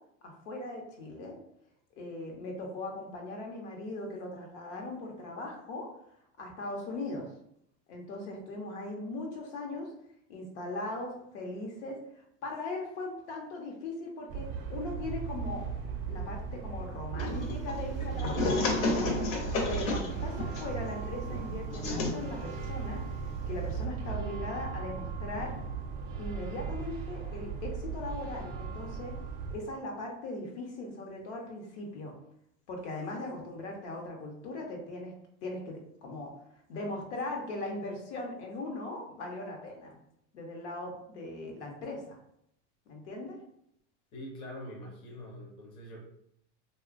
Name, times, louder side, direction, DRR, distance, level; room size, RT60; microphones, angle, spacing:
voice 1, 0.2-1.3 2.0-5.9 6.4-7.2 7.9-9.9 10.3-15.6 16.1-19.1 19.7-23.0 23.5-25.5 26.2-29.1 29.5-32.1 32.7-35.1 35.4-36.3 36.7-40.0 40.3-42.2 42.9-43.4, left 2 dB, 75° left, 1 dB, 1.0 m, -39 dB
sound 1, 14.3-29.6, right 6 dB, 40° right, 0.4 m, -37 dB
sound 2, 17.2-23.8, left 3 dB, 45° left, 0.7 m, -33 dB
voice 2, 44.1-46.0, equal, 15° left, -2 dB, 0.5 m, -44 dB
2.9 x 2.3 x 2.5 m, 0.73 s
supercardioid pair, 145°, 35 cm